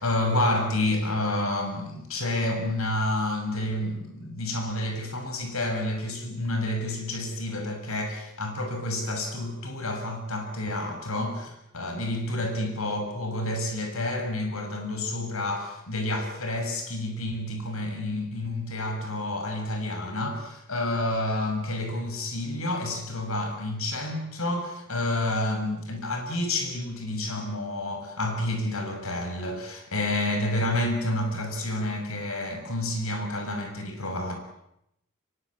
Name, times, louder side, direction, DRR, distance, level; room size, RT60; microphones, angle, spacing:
voice 1, 0.0-34.4, left 1 dB, 75° left, 4 dB, 6.8 m, -29 dB
25.0 x 23.5 x 8.9 m, 0.81 s
head